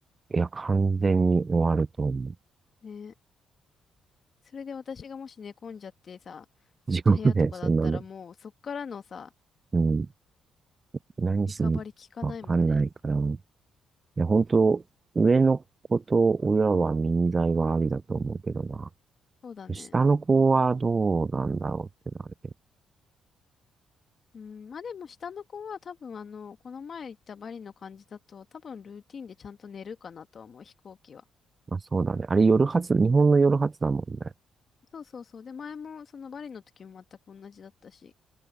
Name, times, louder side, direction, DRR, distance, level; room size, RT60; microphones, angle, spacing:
voice 1, 0.3-2.3 6.9-8.0 9.7-10.1 11.2-11.8 12.2-13.4 14.2-14.8 15.2-15.6 15.9-18.9 19.7-21.9 31.7-34.3, right 4 dB, 30° right, 0.4 m, -23 dB
voice 2, 2.8-3.1 4.4-6.4 7.0-9.3 11.6-12.8 19.4-19.9 20.3-20.7 24.3-31.2 34.9-38.1, left 6 dB, 50° left, 1.7 m, -42 dB
open air
cardioid pair, 90°, 0 cm